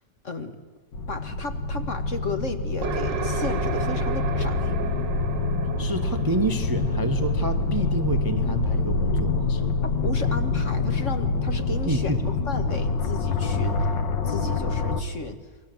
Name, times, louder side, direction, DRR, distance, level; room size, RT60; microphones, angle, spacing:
voice 1, 0.2-0.6 1.1-4.7 9.8-12.1 12.5-13.9 14.2-15.4, left 3 dB, 45° left, 7 dB, 1.9 m, -34 dB
sound 1, 0.9-15.0, left 3 dB, 85° left, 2.1 m, -26 dB
sound 2, 2.8-8.4, right 7 dB, 80° right, 1.9 m, -34 dB
voice 2, 5.8-9.7 11.9-12.3, right 2 dB, 15° right, 8 dB, 1.0 m, -28 dB
28.0 x 22.0 x 7.8 m, 1.3 s
omnidirectional pair, 1.9 m